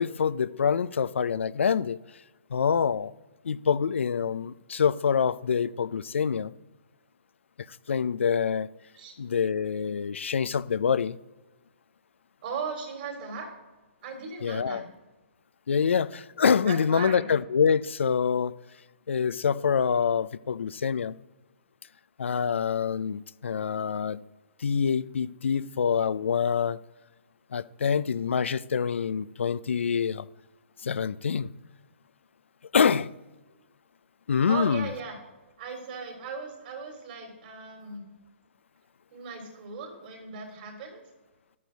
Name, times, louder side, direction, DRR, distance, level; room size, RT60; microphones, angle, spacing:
voice 1, 0.0-2.0 2.5-3.1 3.4-6.5 7.6-8.7 9.2-11.2 14.4-14.9 15.7-18.5 19.1-21.2 22.2-24.2 24.6-26.8 27.5-30.3 30.8-31.5 32.7-33.1 34.3-34.9, left 6 dB, 75° left, 0.5 m, -26 dB
voice 2, 12.4-13.5 14.0-14.9 16.6-17.3 34.5-35.2 35.6-38.1 39.1-41.0, right 5 dB, 50° right, 3.7 m, -37 dB
11.5 x 9.4 x 4.0 m
hypercardioid pair, 135°, 7 cm